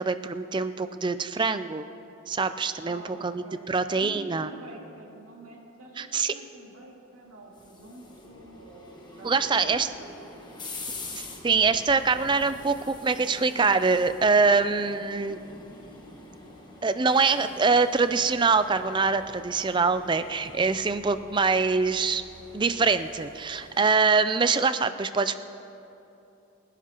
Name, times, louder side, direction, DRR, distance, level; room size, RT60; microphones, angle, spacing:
voice 1, 0.0-1.9 2.3-4.5 6.0-6.3 9.2-9.9 11.1-15.4 16.8-22.2 22.5-25.4, right 4 dB, 20° right, 11 dB, 0.4 m, -24 dB
voice 2, 2.8-10.3, right 2 dB, 85° right, -2 dB, 2.5 m, -47 dB
sound 1, 7.1-23.8, left 2 dB, 20° left, 1.3 m, -45 dB
28.0 x 11.0 x 3.0 m, 2.9 s
head